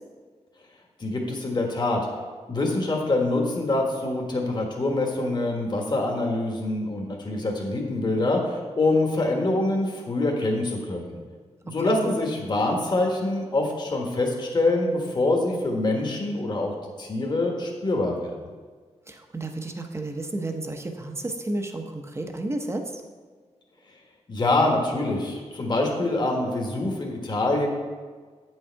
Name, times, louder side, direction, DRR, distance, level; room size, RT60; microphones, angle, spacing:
voice 1, 1.0-2.0 2.5-11.1 11.6-16.7 17.0-18.4 24.3-27.7, left 2 dB, 40° left, 0 dB, 1.4 m, -25 dB
voice 2, 19.1-23.0, right 2 dB, 20° right, 4 dB, 0.8 m, -32 dB
8.7 x 6.4 x 4.6 m, 1.5 s
wide cardioid pair, 120°, 12 cm